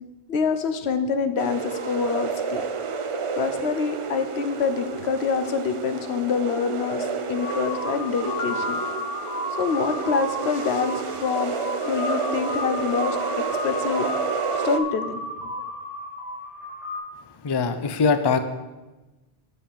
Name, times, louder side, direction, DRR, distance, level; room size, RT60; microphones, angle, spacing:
voice 1, 0.3-2.6 3.4-8.8 9.6-10.9 11.2-14.1 14.6-15.2, left 5 dB, 85° left, 9 dB, 1.0 m, -26 dB
sound 1, 1.4-14.8, right 5 dB, 45° right, 0.4 m, -30 dB
sound 2, 7.3-17.0, left 1 dB, ahead, 2.7 m, -32 dB
Piano, 8.4-10.3, equal, 55° left, 0.9 m, -36 dB
voice 2, 17.4-18.4, left 5 dB, 35° left, 9 dB, 0.4 m, -22 dB
6.9 x 5.6 x 7.3 m, 1.1 s
omnidirectional pair, 1.1 m